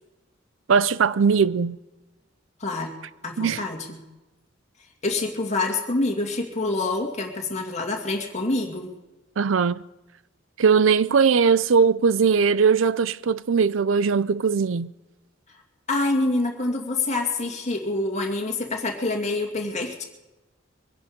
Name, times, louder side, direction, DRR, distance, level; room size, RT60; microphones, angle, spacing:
voice 1, 0.7-1.8 3.4-3.6 9.4-9.8 10.6-14.9, right 5 dB, 85° right, 0.5 m, -20 dB
voice 2, 2.6-2.9 3.2-4.0 5.0-8.9 15.9-20.0, left 2 dB, 35° left, 2.4 m, -26 dB
23.5 x 10.5 x 5.2 m
head